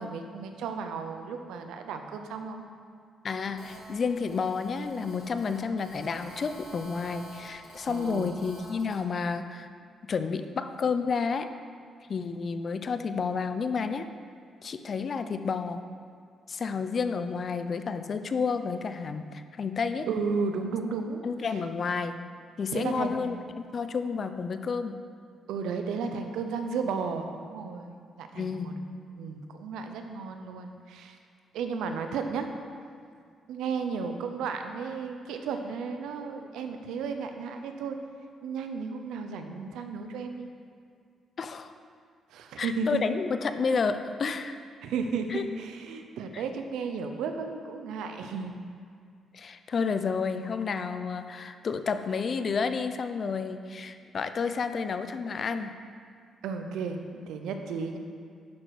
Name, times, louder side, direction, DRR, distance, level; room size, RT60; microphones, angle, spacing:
voice 1, 0.0-2.6 7.9-8.3 20.1-21.3 22.7-23.4 25.5-28.8 29.2-31.2 31.5-32.5 33.5-38.0 38.4-40.5 42.3-43.0 44.8-48.6 56.4-58.0, right 5 dB, 85° right, 6 dB, 0.8 m, -34 dB
voice 2, 3.2-9.7 10.0-11.5 12.1-14.1 14.6-15.8 16.5-20.1 21.2-22.2 22.6-23.4 23.7-25.0 28.3-28.8 41.4-41.7 42.6-44.6 45.3-45.4 46.3-46.4 49.3-55.8, left 5 dB, 50° left, 9 dB, 0.6 m, -30 dB
Telephone, 3.6-9.0, right 1 dB, 65° left, 2.5 m, -48 dB
11.5 x 5.9 x 4.9 m, 2.2 s
cardioid pair, 75°, 0 cm